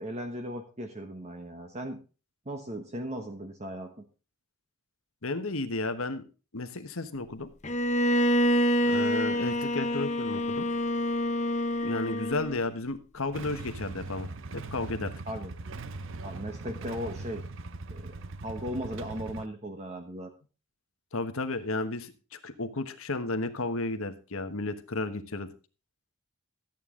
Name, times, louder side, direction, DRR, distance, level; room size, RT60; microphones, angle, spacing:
voice 1, 0.0-2.0 2.5-4.0 15.3-15.5 16.2-17.4 17.9-18.2 18.4-20.3, equal, 30° right, 5 dB, 1.1 m, -37 dB
voice 2, 5.2-6.2 6.5-7.5 8.9-10.7 11.8-14.3 14.5-15.1 21.1-25.5, left 2 dB, 65° left, 9 dB, 1.3 m, -33 dB
Bowed string instrument, 7.6-12.7, equal, 30° left, 0.8 m, -27 dB
Motorcycle / Engine starting / Idling, 13.3-19.5, right 3 dB, 55° right, 0.7 m, -40 dB
13.5 x 9.1 x 3.8 m, 0.34 s
head